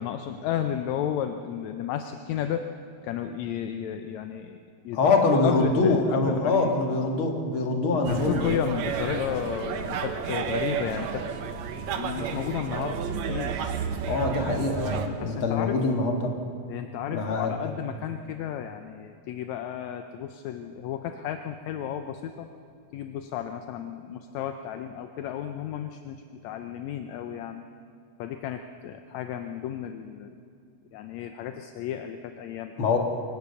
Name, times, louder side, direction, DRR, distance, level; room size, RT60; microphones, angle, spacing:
voice 1, 0.0-2.7 3.0-4.6 4.8-6.7 8.1-11.4 11.9-14.3 15.2-15.8 16.7-22.5 22.9-27.6 28.2-30.3 30.9-32.9, left 10 dB, 75° left, 7 dB, 2.0 m, -33 dB
voice 2, 4.9-8.7 14.0-16.3 17.1-17.6 32.8-33.0, left 3 dB, 45° left, 2 dB, 2.7 m, -24 dB
sound 1, 8.0-15.1, right 7 dB, 70° right, 2.4 m, -31 dB
23.5 x 18.0 x 6.9 m, 2.4 s
omnidirectional pair, 3.3 m